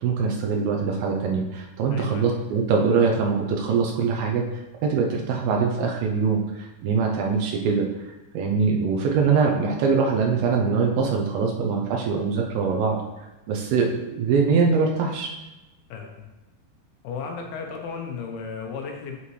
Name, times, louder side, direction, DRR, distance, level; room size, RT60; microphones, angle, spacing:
voice 1, 0.0-4.4 4.8-13.0 13.5-15.3, right 5 dB, 80° right, 0 dB, 2.4 m, -23 dB
voice 2, 1.9-2.3 15.9-16.3 17.0-19.2, left 5 dB, 80° left, 2 dB, 2.7 m, -34 dB
8.5 x 5.6 x 3.1 m, 1.0 s
omnidirectional pair, 4.7 m